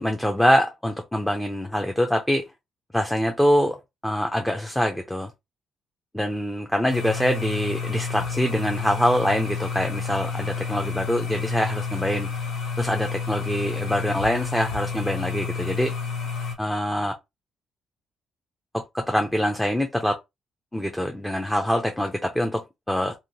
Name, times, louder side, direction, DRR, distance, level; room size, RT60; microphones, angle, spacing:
voice 1, 0.0-2.4 2.9-5.3 6.1-12.3 12.8-15.9 16.6-17.1 18.7-20.1 20.7-23.1, equal, 5° left, 0.5 m, -24 dB
sound 1, 6.9-16.5, left 5 dB, 80° left, 0.8 m, -30 dB
2.8 x 2.8 x 2.7 m
cardioid pair, 90°, 0 cm